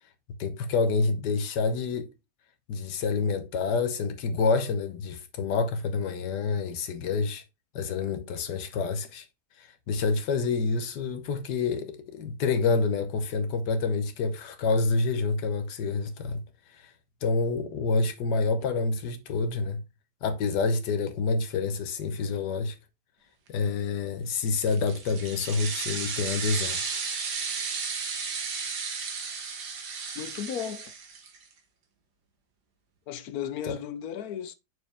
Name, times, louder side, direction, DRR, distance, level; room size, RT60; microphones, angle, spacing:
voice 1, 0.4-2.1 2.7-7.4 7.7-9.3 9.6-16.4 16.8-16.9 17.2-19.8 20.2-22.7 23.5-26.8 33.7-33.8, left 4 dB, 90° left, 1.6 m, -28 dB
sound 1, 24.5-31.4, right 5 dB, 80° right, 1.8 m, -34 dB
voice 2, 30.1-30.9 33.1-34.5, left 9 dB, 70° left, 1.1 m, -35 dB
6.2 x 4.6 x 3.4 m
omnidirectional pair, 1.8 m